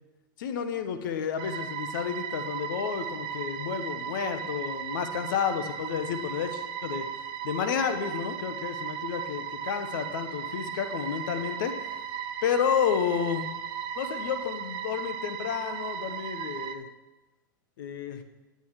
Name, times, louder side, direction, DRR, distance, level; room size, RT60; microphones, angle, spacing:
voice 1, 0.4-7.1 7.4-11.7 12.4-13.5 14.0-16.8 17.8-18.2, left 8 dB, 70° left, 9 dB, 1.1 m, -31 dB
sound 1, 1.4-16.7, right 8 dB, 45° right, 0.8 m, -36 dB
10.5 x 8.1 x 4.8 m, 1.1 s
hypercardioid pair, 110°, 11 cm